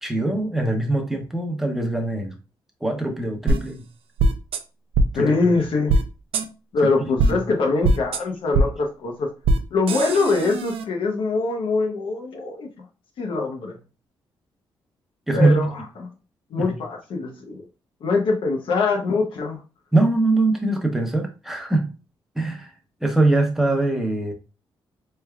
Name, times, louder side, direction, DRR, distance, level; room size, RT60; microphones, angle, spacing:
voice 1, 0.0-2.3 2.8-3.9 5.1-5.6 6.8-7.4 15.3-15.7 16.6-16.8 19.9-21.9 22.3-22.7 23.0-24.3, right 2 dB, 5° right, 4 dB, 0.8 m, -22 dB
sound 1, 3.5-3.6 4.2-4.6 4.9-5.1 5.9-6.0 6.3-6.4 7.2-7.3 7.8-8.2 8.5-8.7 9.4-9.6 9.9-10.8, right 2 dB, 85° right, 0.5 m, -19 dB
voice 2, 5.1-6.0 6.7-9.3 9.7-12.7 13.2-13.8 15.3-16.1 16.5-17.6 18.0-19.6, left 3 dB, 70° left, 1 dB, 0.8 m, -23 dB
4.4 x 3.3 x 2.3 m, 0.32 s
wide cardioid pair, 145°, 9 cm